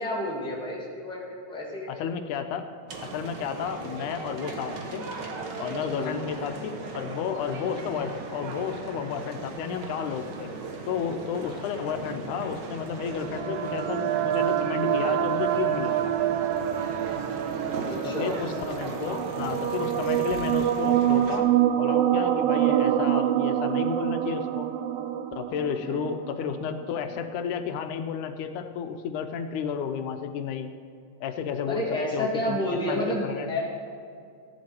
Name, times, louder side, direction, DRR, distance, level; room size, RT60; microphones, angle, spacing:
voice 1, 0.0-1.9 5.9-6.2 17.8-18.3 25.8-26.0 31.7-33.7, left 1 dB, ahead, -5 dB, 2.0 m, -30 dB
voice 2, 1.9-2.6 3.0-5.0 5.6-10.5 10.9-16.1 18.0-21.5 21.8-24.7 25.3-30.7 31.2-31.8 32.1-33.7, left 7 dB, 85° left, 8 dB, 2.2 m, -32 dB
sound 1, 2.9-21.4, right 3 dB, 60° right, 1.2 m, -37 dB
sound 2, 13.0-26.7, right 11 dB, 90° right, 1.3 m, -26 dB
14.5 x 10.5 x 4.5 m, 2.3 s
omnidirectional pair, 3.4 m